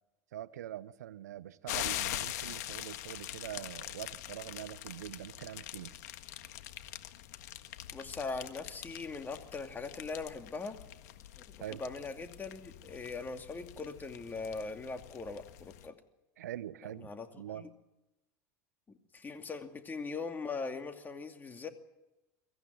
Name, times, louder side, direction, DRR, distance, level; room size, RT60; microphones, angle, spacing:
voice 1, 0.3-5.9 11.6-11.8 16.4-17.1 17.4-17.7, right 12 dB, 90° right, 0.8 m, -44 dB
sound 1, 1.7-15.9, left 14 dB, 75° left, 1.6 m, -43 dB
voice 2, 7.9-10.8 11.5-16.0 16.9-17.7 18.9-21.7, left 4 dB, 20° left, 2.5 m, -41 dB
24.0 x 15.0 x 9.4 m
hypercardioid pair, 100°, 9 cm